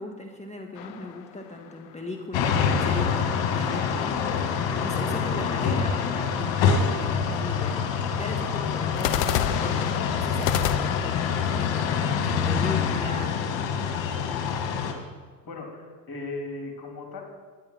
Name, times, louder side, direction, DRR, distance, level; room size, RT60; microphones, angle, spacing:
voice 1, 0.0-4.1 4.8-13.4, left 2 dB, 15° left, 2 dB, 1.6 m, -38 dB
sound 1, 0.7-2.2 9.0-12.9, left 10 dB, 85° left, 0.8 m, -31 dB
sound 2, 2.3-14.9, left 6 dB, 60° left, 1.9 m, -26 dB
voice 2, 15.4-17.2, left 2 dB, 45° left, 1 dB, 3.6 m, -37 dB
10.0 x 10.0 x 5.9 m, 1.5 s
hypercardioid pair, 65°, 50 cm